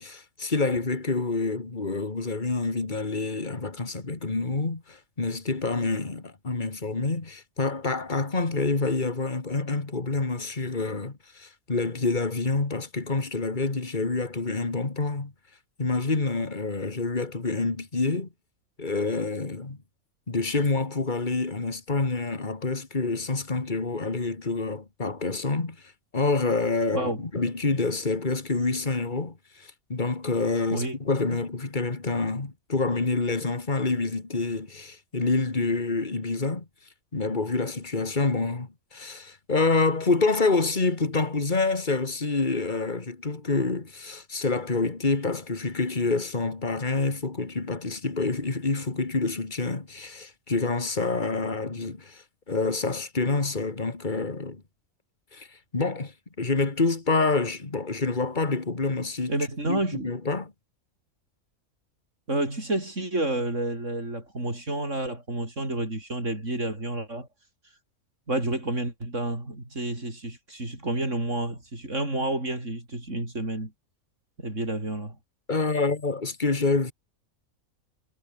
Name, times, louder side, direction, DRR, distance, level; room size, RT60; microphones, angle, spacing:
voice 1, 0.0-15.3 15.8-18.3 18.8-19.8 20.3-25.8 26.1-36.6 37.1-54.6 55.3-55.5 55.7-59.4 59.7-60.5 75.5-76.9, left 3 dB, 35° left, 2.5 m, -27 dB
voice 2, 26.8-27.2 30.7-31.0 31.3-31.4 59.3-60.1 62.3-67.3 68.3-73.7 74.4-75.2, right 1 dB, 60° right, 7.3 m, -30 dB
omnidirectional pair, 1.5 m